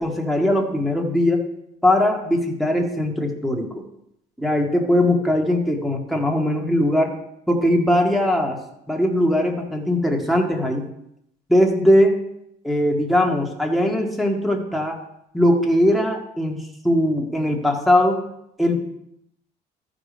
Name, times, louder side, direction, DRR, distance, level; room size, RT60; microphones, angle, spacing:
voice 1, 0.0-1.4 1.8-3.8 4.4-7.1 7.5-8.6 8.9-10.9 11.5-12.2 12.6-15.0 15.3-18.2 18.6-18.9, left 1 dB, ahead, 0 dB, 1.9 m, -20 dB
13.5 x 5.2 x 5.2 m, 0.77 s
cardioid pair, 110°, 17 cm